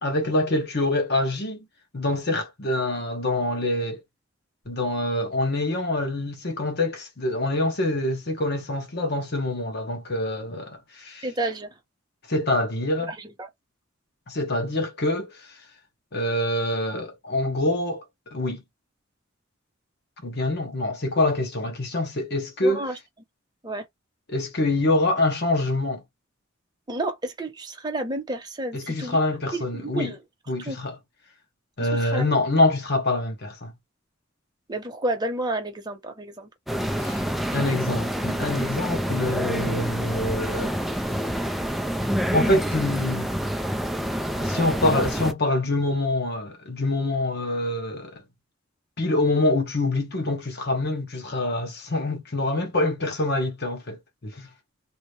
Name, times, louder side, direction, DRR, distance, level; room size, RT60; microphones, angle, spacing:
voice 1, 0.0-1.7 1.9-4.0 4.7-11.3 12.3-13.1 14.3-15.6 16.1-18.0 18.3-18.6 20.2-22.9 24.3-26.0 28.7-30.1 30.5-31.0 31.8-33.7 37.0-37.2 37.5-40.7 42.3-43.3 44.4-48.2 49.0-54.5, left 2 dB, 55° left, 1.0 m, -25 dB
voice 2, 11.2-11.7 13.1-13.5 22.6-23.0 23.6-23.8 26.9-29.2 29.5-30.2 30.6-30.8 31.8-32.2 34.7-36.5 37.0-37.2, right 2 dB, 20° right, 0.9 m, -31 dB
sound 1, 36.7-45.3, equal, ahead, 0.3 m, -27 dB
2.8 x 2.6 x 3.2 m
head